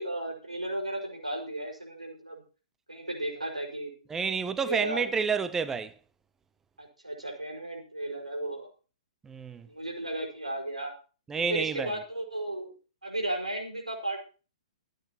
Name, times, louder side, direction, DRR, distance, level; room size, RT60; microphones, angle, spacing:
voice 1, 0.0-2.4 2.9-4.1 4.6-5.1 6.8-8.7 9.6-10.9 11.4-12.7 13.0-14.2, right 1 dB, 85° right, 5.3 m, -34 dB
voice 2, 4.1-5.9 9.2-9.7 11.3-11.9, right 5 dB, 10° right, 0.7 m, -29 dB
25.0 x 9.2 x 3.0 m
figure-of-eight pair, 115°, 4 cm